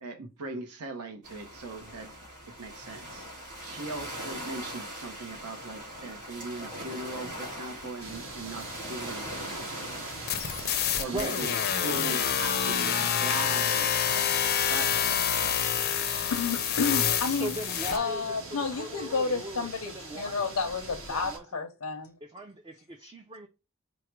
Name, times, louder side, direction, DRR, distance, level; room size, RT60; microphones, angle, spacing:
voice 1, 0.0-2.1 2.5-3.3 3.6-10.0 11.0-11.5 11.8-14.3 14.7-15.5, right 3 dB, 85° right, 0.7 m, -40 dB
sound 1, 1.2-11.0, equal, 40° right, 2.3 m, -41 dB
sound 2, 8.0-21.4, right 2 dB, 65° right, 1.3 m, -42 dB
sound 3, 10.3-18.0, left 9 dB, 45° left, 0.5 m, -27 dB
voice 2, 16.3-17.5 17.9-22.2, left 4 dB, 85° left, 0.6 m, -31 dB
voice 3, 17.2-21.6 22.2-23.5, right 1 dB, 20° right, 0.4 m, -40 dB
4.6 x 2.1 x 4.4 m
head